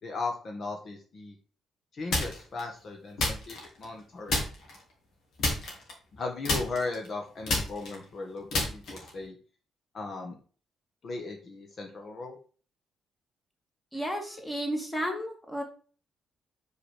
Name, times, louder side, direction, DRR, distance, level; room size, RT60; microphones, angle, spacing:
voice 1, 0.0-1.3 1.9-4.4 6.2-9.4 9.9-10.3 11.0-12.4, left 3 dB, 50° left, 3 dB, 1.3 m, -37 dB
sound 1, 2.1-2.6 3.2-4.0 4.3-4.8 5.4-6.2 6.4-9.2, left 2 dB, 70° left, 2.7 m, -30 dB
voice 2, 13.9-15.6, equal, 15° left, 3 dB, 2.0 m, -32 dB
5.0 x 4.9 x 5.0 m, 0.39 s
cardioid pair, 90°, 0 cm